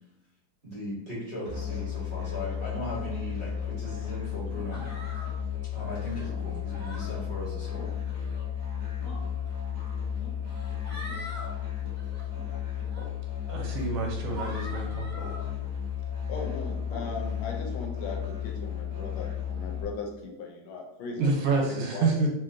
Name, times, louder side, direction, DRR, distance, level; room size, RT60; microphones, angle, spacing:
voice 1, 0.6-4.8 5.7-7.8, equal, 40° right, -8 dB, 0.7 m, -38 dB
Musical instrument, 1.4-19.8, left 9 dB, 55° right, 0.3 m, -34 dB
sound 1, 4.5-4.9 6.3-6.6 7.7-8.1 9.0-9.4 10.2-10.4 11.0-11.2 12.3-12.5 12.9-13.2 14.4-14.5 15.1-15.4 16.9-17.2, left 1 dB, 55° left, 1.1 m, -45 dB
sound 2, 4.7-5.3 5.9-6.3 6.7-7.1 8.0-8.4 9.4-9.5 10.5-11.5 11.9-12.2 12.9-13.0 13.6-13.9 14.3-15.4, equal, 35° left, 0.8 m, -43 dB
voice 2, 13.5-15.1 21.2-22.3, right 4 dB, 80° right, 0 dB, 1.5 m, -27 dB
voice 3, 16.3-22.3, left 3 dB, 80° left, 2 dB, 1.4 m, -38 dB
3.1 x 2.8 x 2.5 m, 0.88 s
omnidirectional pair, 2.2 m